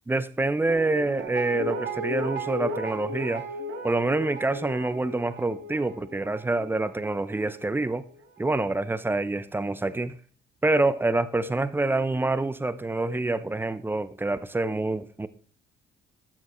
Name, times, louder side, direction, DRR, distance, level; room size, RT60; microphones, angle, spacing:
voice 1, 0.1-3.4 3.8-8.0 8.4-10.2 10.6-15.3, right 2 dB, 10° right, 15 dB, 0.4 m, -26 dB
Guitar, 0.7-7.7 8.0-8.1, right 1 dB, 70° right, 1.7 m, -35 dB
13.0 x 6.7 x 3.1 m, 0.43 s
cardioid pair, 110°, 20 cm